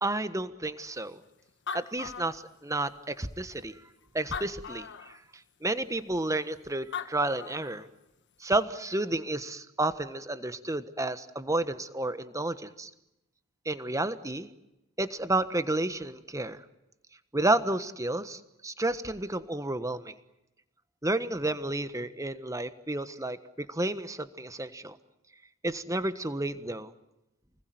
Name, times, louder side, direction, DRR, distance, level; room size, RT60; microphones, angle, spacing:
voice 1, 0.0-1.2 1.7-3.7 4.1-4.9 5.6-7.8 8.4-12.9 13.6-14.5 15.0-16.6 17.3-20.1 21.0-23.4 23.7-25.0 25.6-26.9, right 2 dB, 15° right, 12 dB, 1.4 m, -31 dB
Animal, 1.2-1.3 1.5-2.9 3.6-3.7 4.2-5.2 6.6-6.7 6.9-7.9, left 6 dB, 55° left, 1.6 m, -39 dB
29.5 x 20.5 x 9.5 m, 0.92 s
head